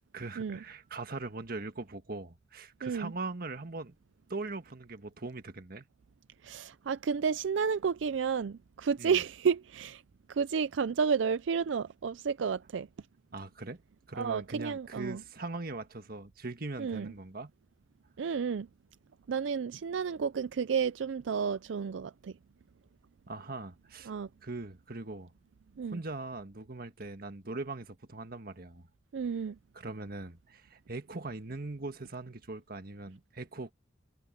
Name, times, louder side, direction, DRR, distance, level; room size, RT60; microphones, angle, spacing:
voice 1, 0.1-4.0 4.3-5.8 9.0-9.2 13.3-13.8 14.1-17.5 23.3-24.1 24.4-25.3 25.8-28.9 29.7-33.7, right 3 dB, 55° right, 1.6 m, -41 dB
voice 2, 2.8-3.1 6.4-10.0 10.3-12.9 14.1-15.2 16.8-17.1 18.2-18.7 19.3-22.3 24.1-24.3 25.8-26.0 29.1-29.6, right 6 dB, 80° right, 0.4 m, -31 dB
head